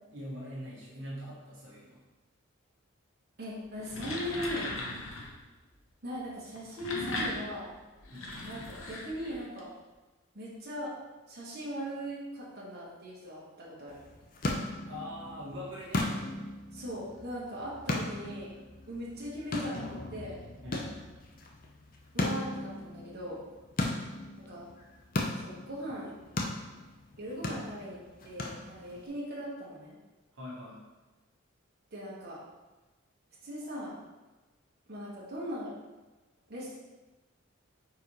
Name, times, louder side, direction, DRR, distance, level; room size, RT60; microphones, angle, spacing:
voice 1, 0.1-2.0 8.1-8.4 14.8-16.1 20.6-20.9 23.8-24.0 30.3-30.8, equal, 65° right, -6 dB, 1.5 m, -42 dB
voice 2, 3.4-4.7 6.0-7.7 8.4-9.7 10.3-10.9 11.3-13.9 16.7-18.5 18.9-20.4 22.1-23.4 24.4-24.7 25.4-26.1 27.2-30.0 31.9-32.4 33.4-34.0 34.9-35.7 36.5-36.8, equal, 50° right, -7 dB, 1.5 m, -39 dB
sound 1, 3.7-5.4 6.5-9.6, left 2 dB, 80° left, 1.0 m, -38 dB
sound 2, 13.9-29.1, left 2 dB, 45° left, 0.7 m, -37 dB
4.6 x 4.2 x 4.8 m, 1.2 s
head